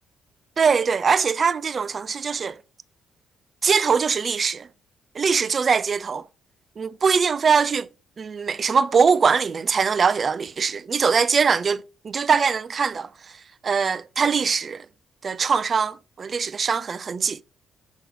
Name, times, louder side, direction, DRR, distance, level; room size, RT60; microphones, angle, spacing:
voice 1, 0.6-2.6 3.6-4.7 5.1-6.3 6.8-7.9 8.2-13.1 13.6-14.9 15.2-17.4, right 5 dB, 40° right, 0.4 m, -22 dB
7.1 x 3.6 x 3.7 m
cardioid pair, 90°, 0 cm